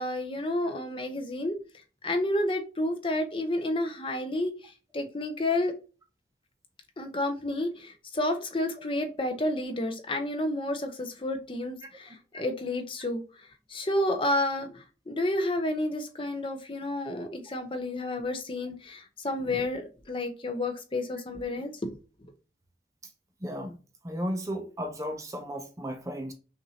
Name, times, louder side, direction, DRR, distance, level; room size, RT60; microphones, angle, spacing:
voice 1, 0.0-1.5 2.0-5.7 7.0-13.2 13.7-21.9, left 1 dB, 30° left, 0.6 m, -30 dB
voice 2, 23.4-23.8 24.0-26.3, equal, 15° right, 0.6 m, -34 dB
5.9 x 2.6 x 2.8 m
head